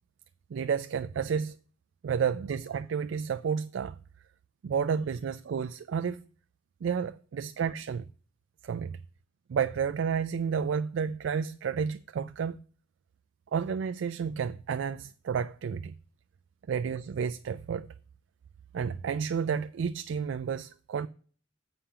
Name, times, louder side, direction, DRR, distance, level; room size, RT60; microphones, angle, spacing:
voice 1, 0.5-1.6 2.0-4.0 4.6-6.2 6.8-8.1 8.6-9.0 9.5-12.6 13.5-15.9 16.7-17.9 18.7-21.1, right 6 dB, 80° right, 0.3 m, -31 dB
7.3 x 5.1 x 5.6 m
head